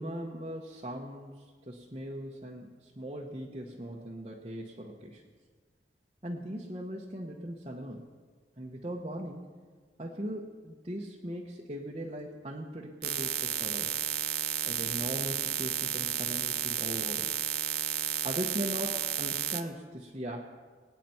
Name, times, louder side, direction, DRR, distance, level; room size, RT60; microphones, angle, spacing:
voice 1, 0.0-5.2 6.2-8.1 8.6-9.6 10.0-13.9 14.6-17.3 18.2-20.4, equal, 30° right, -3 dB, 1.1 m, -39 dB
sound 1, 13.0-19.6, right 12 dB, 60° right, 0.8 m, -32 dB
24.5 x 9.2 x 4.5 m, 1.5 s
head